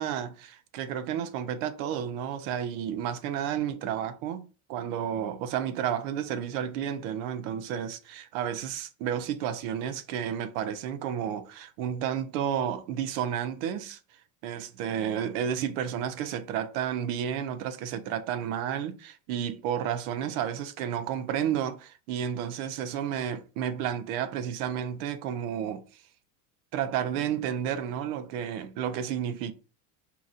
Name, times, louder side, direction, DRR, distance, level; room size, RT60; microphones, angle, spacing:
voice 1, 0.0-14.0 14.4-25.8 26.7-29.5, right 9 dB, 70° right, 0.7 m, -31 dB
3.7 x 2.9 x 2.4 m
supercardioid pair, 130°, 45 cm